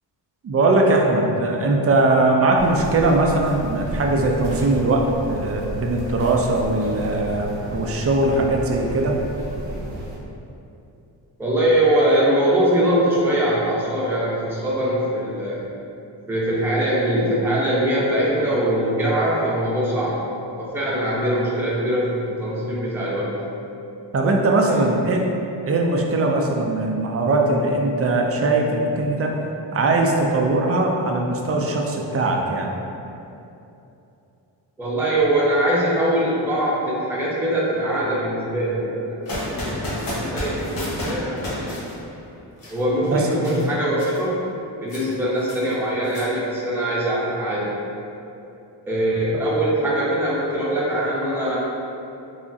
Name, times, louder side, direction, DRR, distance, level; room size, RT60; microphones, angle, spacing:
voice 1, 0.4-9.2 24.1-25.3 25.7-29.4 29.7-32.8 43.1-43.6, right 2 dB, 35° right, 1 dB, 0.4 m, -20 dB
sound 1, 2.6-10.2, right 1 dB, 85° right, 0.8 m, -33 dB
voice 2, 11.4-15.6 16.3-20.2 20.6-23.3 24.6-24.9 34.8-41.7 42.7-44.4 44.8-47.7 48.9-51.6, right 1 dB, 5° right, -7 dB, 0.7 m, -22 dB
sound 2, 39.2-41.1 41.6-42.0 42.6-43.2 43.4-43.7 44.0-44.2 44.9-46.5, left 1 dB, 70° left, 1.0 m, -42 dB
sound 3, 39.3-42.5, left 1 dB, 50° left, 1.0 m, -29 dB
3.5 x 2.1 x 2.6 m, 2.8 s
cardioid pair, 65°, 45 cm